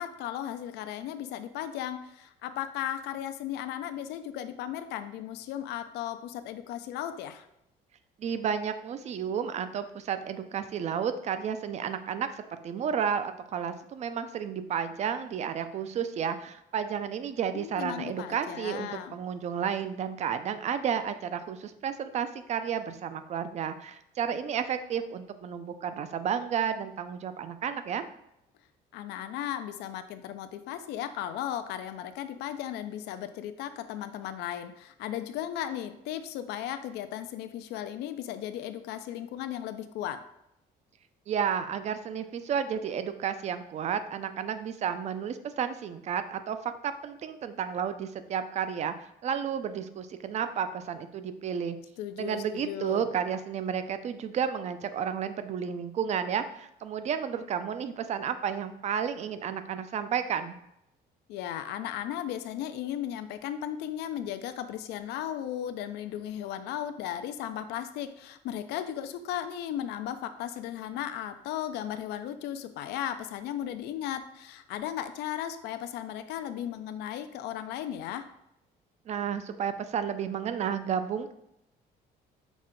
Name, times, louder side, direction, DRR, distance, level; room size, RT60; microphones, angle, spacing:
voice 1, 0.0-7.5 17.5-19.2 28.9-40.2 52.0-53.1 61.3-78.3, left 11 dB, 80° left, 10 dB, 0.4 m, -36 dB
voice 2, 8.2-12.3 12.6-28.1 41.3-48.9 49.2-51.8 52.2-60.6 79.1-81.3, right 8 dB, 40° right, 11 dB, 0.4 m, -32 dB
6.0 x 2.2 x 3.7 m, 0.80 s
cardioid pair, 110°, 17 cm